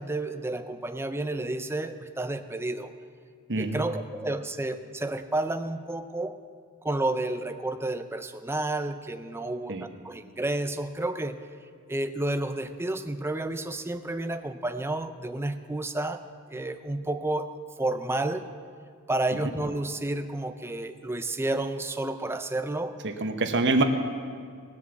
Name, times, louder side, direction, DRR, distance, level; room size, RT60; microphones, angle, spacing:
voice 1, 0.0-2.9 3.6-6.4 6.8-11.4 11.9-16.2 16.5-18.5 19.1-23.0, right 2 dB, 10° right, 9 dB, 0.5 m, -31 dB
voice 2, 3.5-3.8 9.7-9.8 23.0-23.8, right 2 dB, 55° right, 6 dB, 1.1 m, -25 dB
19.0 x 7.7 x 7.0 m, 2.1 s
head